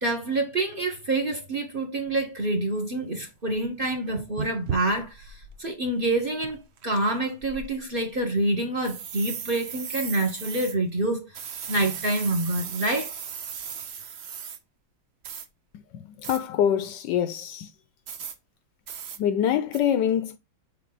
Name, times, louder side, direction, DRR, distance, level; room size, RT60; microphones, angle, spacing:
voice 1, 0.0-11.3 11.7-13.1, right 2 dB, 30° right, 1.2 m, -27 dB
sound 1, 1.3-1.4 2.1-2.2 2.8-2.9 3.1-5.6 5.9-6.0 6.4-7.0 7.4-8.2 8.8-10.7 11.3-14.6 15.2-15.5 16.2-16.4 18.1-18.3 18.9-19.2 19.7-19.8, right 7 dB, 75° right, 0.6 m, -37 dB
voice 2, 15.7-17.7 19.2-20.4, left 9 dB, 70° left, 1.2 m, -25 dB
6.7 x 4.4 x 3.9 m
omnidirectional pair, 2.1 m